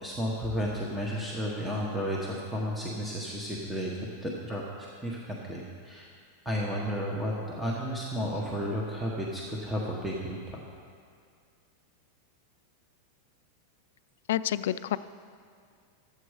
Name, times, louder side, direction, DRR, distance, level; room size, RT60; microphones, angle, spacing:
voice 1, 0.0-6.1 6.4-10.6, equal, 5° right, -4 dB, 0.8 m, -33 dB
voice 2, 14.3-15.0, left 12 dB, 70° left, 14 dB, 0.3 m, -28 dB
11.5 x 8.0 x 4.8 m, 2.2 s
supercardioid pair, 160°, 0 cm